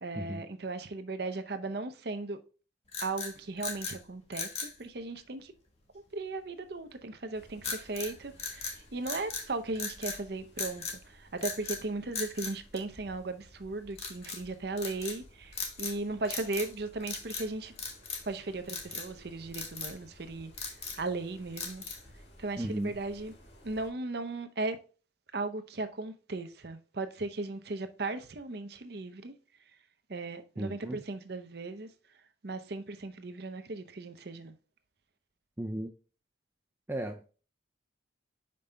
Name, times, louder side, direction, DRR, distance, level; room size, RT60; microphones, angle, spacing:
voice 1, 0.0-2.4 3.0-5.5 6.1-17.7 18.3-21.8 22.4-23.3 23.6-24.8 25.3-29.3 30.1-31.9 32.4-34.6, right 2 dB, 55° right, 0.6 m, -37 dB
sound 1, 2.9-4.0 4.3-4.8 7.6-8.1 8.4-9.5 9.8-10.2 10.6-11.0 11.4-11.8 12.1-13.3 14.0-14.4 14.8-15.2 15.5-16.7 17.0-17.5 17.8-18.3 18.7-19.1 19.5-20.0 20.4-21.1 21.6-22.1, left 5 dB, 30° left, 1.2 m, -38 dB
sound 2, 7.3-23.9, equal, 60° left, 1.9 m, -57 dB
voice 2, 22.6-22.9 30.6-31.0 35.6-35.9 36.9-37.4, right 1 dB, 10° right, 0.4 m, -36 dB
5.4 x 5.3 x 3.4 m
head